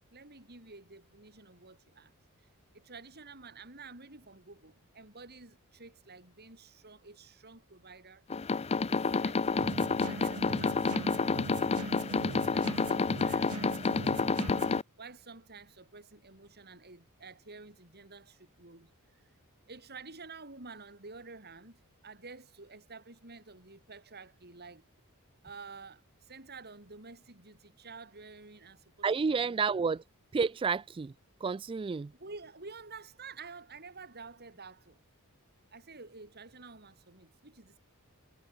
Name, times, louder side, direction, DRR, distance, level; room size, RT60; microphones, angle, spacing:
voice 1, 0.1-2.1 2.4-2.5 2.7-8.2 8.9-9.8 10.1-14.5 15.0-19.3 19.7-24.9 25.4-29.6 29.9-30.0 32.1-35.0 35.7-37.8, right 4 dB, 45° right, 6.7 m, -50 dB
sound 1, 8.3-14.8, left 4 dB, 30° left, 0.5 m, -29 dB
sound 2, 9.6-14.8, right 2 dB, 85° right, 2.4 m, -41 dB
voice 2, 29.0-30.0 30.3-31.1 31.4-32.1, right 5 dB, 25° right, 0.3 m, -30 dB
head